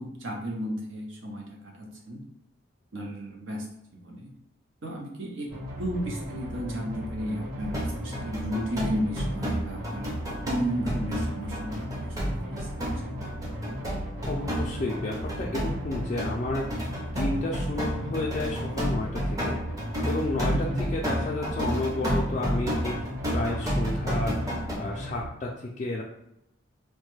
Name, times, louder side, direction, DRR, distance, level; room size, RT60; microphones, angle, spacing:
voice 1, 0.0-2.2 2.9-3.6 4.0-4.3 4.8-5.5 5.8-10.1 10.5-13.2 20.5-20.8, equal, 75° right, -1 dB, 0.8 m, -33 dB
sound 1, 5.5-25.3, equal, 45° right, 1.5 m, -37 dB
sound 2, 7.6-24.8, equal, 15° right, 0.6 m, -30 dB
voice 2, 14.3-16.9 17.1-19.6 20.1-20.7 20.9-26.0, left 2 dB, 35° left, -3 dB, 0.3 m, -31 dB
3.1 x 2.1 x 3.2 m, 0.80 s
head